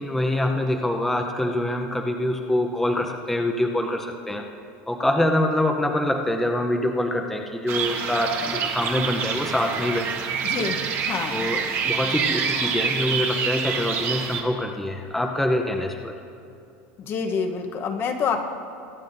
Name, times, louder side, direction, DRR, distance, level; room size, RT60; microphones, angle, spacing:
voice 1, 0.0-4.4 4.9-10.1 11.3-16.1, left 1 dB, 5° left, 2 dB, 0.7 m, -25 dB
sound 1, 7.7-14.4, right 6 dB, 45° right, 1.2 m, -27 dB
voice 2, 10.4-11.5 17.0-18.4, left 5 dB, 40° left, 4 dB, 1.0 m, -27 dB
23.0 x 8.4 x 2.7 m, 2.7 s
supercardioid pair, 125°, 6 cm